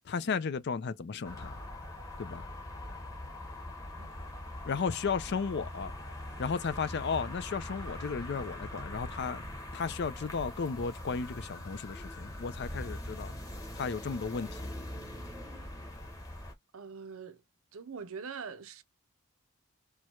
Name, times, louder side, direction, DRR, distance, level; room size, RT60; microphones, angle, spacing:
voice 1, 0.1-1.5 2.2-2.4 4.6-5.9 6.4-9.4 9.7-13.3 13.7-14.7, left 5 dB, 50° left, 0.4 m, -34 dB
sound 1, 1.2-16.5, left 1 dB, 15° left, 1.0 m, -42 dB
voice 2, 16.7-17.4 17.7-18.8, right 5 dB, 70° right, 0.6 m, -43 dB
4.5 x 2.3 x 4.4 m
head